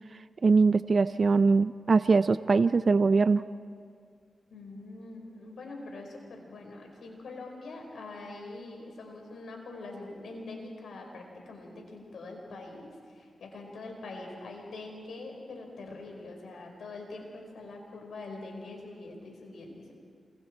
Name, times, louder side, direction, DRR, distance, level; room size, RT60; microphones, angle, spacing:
voice 1, 0.4-3.5, right 4 dB, 55° right, 13 dB, 0.5 m, -22 dB
voice 2, 4.5-19.9, left 2 dB, 80° left, 1 dB, 4.8 m, -44 dB
28.0 x 24.0 x 4.4 m, 2.1 s
cardioid pair, 55°, 0 cm